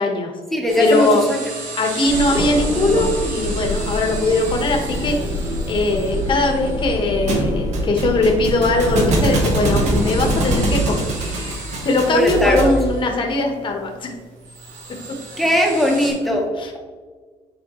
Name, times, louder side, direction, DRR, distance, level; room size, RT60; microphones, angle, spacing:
voice 1, 0.0-0.3 0.8-1.2 1.7-14.1 16.6-16.7, left 2 dB, 40° left, 2 dB, 1.3 m, -20 dB
voice 2, 0.5-1.4 12.0-12.7 15.4-16.5, equal, ahead, -1 dB, 1.2 m, -19 dB
sound 1, 0.7-16.1, right 3 dB, 75° right, 1.7 m, -35 dB
sound 2, 2.1-10.8, left 1 dB, 25° right, 1.3 m, -25 dB
Thump thud, 7.3-12.8, right 2 dB, 60° right, 1.6 m, -23 dB
10.0 x 3.9 x 3.1 m, 1.5 s
cardioid pair, 115°, 13 cm